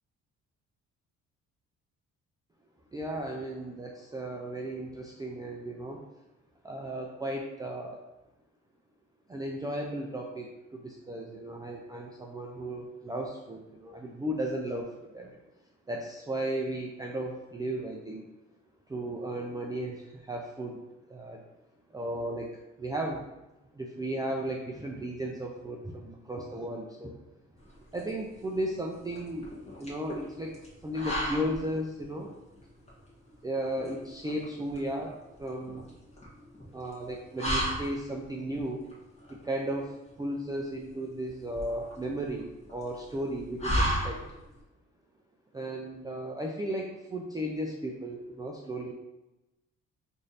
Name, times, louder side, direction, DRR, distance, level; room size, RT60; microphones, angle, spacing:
voice 1, 2.9-6.0 6.6-8.0 9.3-10.5 10.7-15.4 15.9-18.2 18.9-20.8 21.1-21.4 21.9-22.5 22.8-23.3 23.7-27.2 27.9-30.6 30.8-32.3 33.4-35.9 36.7-38.8 39.3-44.2 45.5-48.9, right 1 dB, 15° right, -1 dB, 0.4 m, -35 dB
sound 1, 27.6-44.6, equal, 20° left, 1.2 m, -36 dB
3.1 x 2.7 x 4.0 m, 1.0 s
cardioid pair, 90°, 30 cm